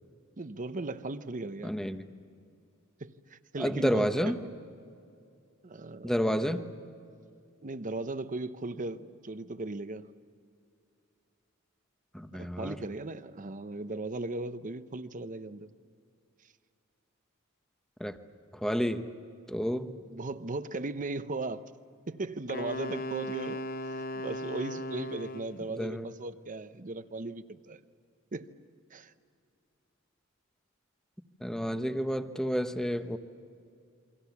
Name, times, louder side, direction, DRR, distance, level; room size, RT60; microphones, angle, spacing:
voice 1, 0.4-1.7 3.0-4.3 5.6-6.6 7.6-10.1 12.3-15.7 20.1-21.7 22.1-23.6 23.9-27.8 28.3-28.5 28.9-29.1, right 2 dB, 40° right, 11 dB, 0.9 m, -37 dB
voice 2, 1.6-2.0 3.6-4.4 6.0-6.6 12.1-12.8 18.0-18.2 18.5-19.1 19.5-19.9 25.7-26.1 31.4-33.2, equal, 5° left, 8 dB, 1.0 m, -30 dB
Wind instrument woodwind instrument, 22.5-25.6, left 1 dB, 45° left, 0.9 m, -37 dB
28.0 x 24.0 x 7.2 m, 2.4 s
head